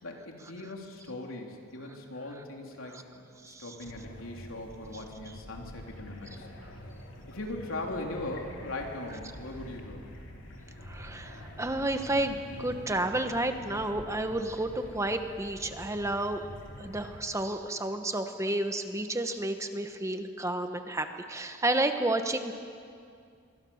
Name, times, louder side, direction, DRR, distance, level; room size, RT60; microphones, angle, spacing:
voice 1, 0.0-6.5 7.3-10.0, left 2 dB, 80° left, 1 dB, 3.5 m, -40 dB
sound 1, 3.8-17.2, left 1 dB, 65° left, 3.3 m, -46 dB
voice 2, 10.9-16.4 16.8-22.5, right 1 dB, 15° right, 7 dB, 1.1 m, -31 dB
26.0 x 24.0 x 7.2 m, 2.3 s
head